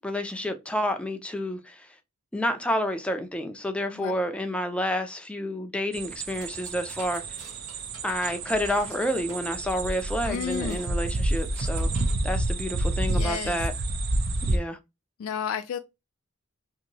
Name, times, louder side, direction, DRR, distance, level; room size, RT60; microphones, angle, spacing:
voice 1, 0.0-1.8 2.3-7.2 8.0-11.9 12.2-13.7 14.5-14.8, equal, 5° left, 0.4 m, -29 dB
sound 1, 5.9-14.6, right 2 dB, 50° right, 0.5 m, -29 dB
sound 2, 6.2-12.2, right 3 dB, 90° right, 1.3 m, -49 dB
voice 2, 10.2-10.9 13.1-13.7 15.2-15.8, left 7 dB, 70° left, 0.3 m, -32 dB
2.9 x 2.6 x 2.7 m
head